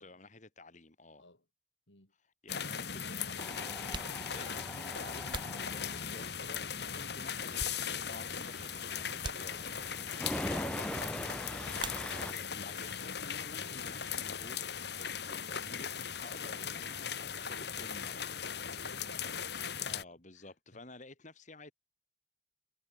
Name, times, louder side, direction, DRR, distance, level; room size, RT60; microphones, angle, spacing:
voice 1, 0.0-1.2 2.2-14.6 15.3-18.3 19.9-21.7, left 2 dB, 40° left, 2.4 m, -52 dB
sound 1, 2.0-2.1 3.0-3.1 3.7-6.4 6.9-8.3 8.6-8.7 9.2-10.0 11.7-12.5 12.8-13.5 13.8-15.9, right 3 dB, 25° right, 3.7 m, -47 dB
sound 2, 2.5-20.0, left 7 dB, 60° left, 2.6 m, -39 dB
Tools, 3.4-12.3, left 1 dB, 5° left, 0.6 m, -43 dB
voice 2, 12.1-12.7 18.4-20.0 20.4-20.8, left 2 dB, 75° left, 6.9 m, -58 dB
head